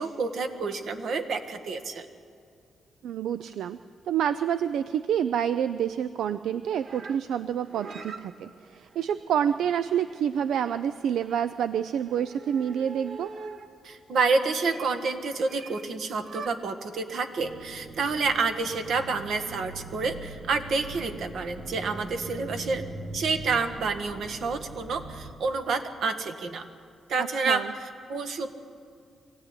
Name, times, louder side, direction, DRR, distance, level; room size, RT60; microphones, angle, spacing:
voice 1, 0.0-2.1 7.8-7.9 13.8-22.8 23.1-26.6 27.1-28.6, right 4 dB, 70° right, 7 dB, 1.7 m, -29 dB
voice 2, 3.0-3.8 4.1-13.3 27.2-27.7, right 9 dB, 85° right, 13 dB, 0.5 m, -28 dB
sound 1, 6.7-13.8 14.5-14.9 15.4-15.9 16.2-16.5, right 4 dB, 50° right, 1.3 m, -45 dB
sound 2, 17.4-25.3, right 2 dB, 35° right, 1.4 m, -41 dB
23.5 x 16.0 x 9.8 m, 2.3 s
cardioid pair, 130°, 0 cm